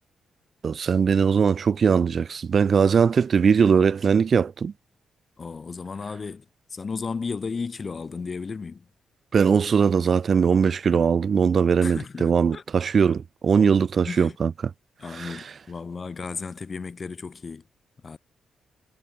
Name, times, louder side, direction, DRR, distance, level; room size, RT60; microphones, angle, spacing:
voice 1, 0.6-4.7 9.3-14.5 15.1-15.4, right 6 dB, 50° right, 1.2 m, -20 dB
voice 2, 5.4-6.4 6.7-8.8 11.8-12.6 14.0-14.4 15.0-17.6 18.0-18.2, left 5 dB, 45° left, 2.9 m, -34 dB
hypercardioid pair, 40°, 0 cm